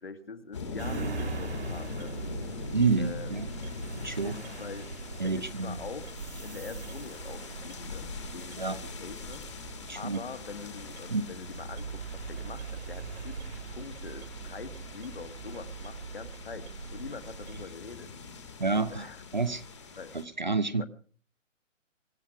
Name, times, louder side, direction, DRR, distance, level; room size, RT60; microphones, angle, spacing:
voice 1, 0.0-2.1 3.0-3.3 3.9-4.9 5.2-6.1 6.4-9.4 9.9-18.1 18.9-19.2 20.0-20.2 20.8-20.9, left 5 dB, 50° left, 1.9 m, -44 dB
sound 1, 0.5-20.2, left 4 dB, 20° left, 1.8 m, -43 dB
sound 2, 0.8-17.7, right 4 dB, 55° right, 2.4 m, -41 dB
voice 2, 2.7-3.5 4.0-4.3 5.2-5.8 8.6-8.8 9.9-10.2 11.1-11.3 18.6-19.6 20.1-20.9, right 4 dB, 35° right, 0.8 m, -29 dB
24.0 x 8.5 x 5.9 m
hypercardioid pair, 180°, 39 cm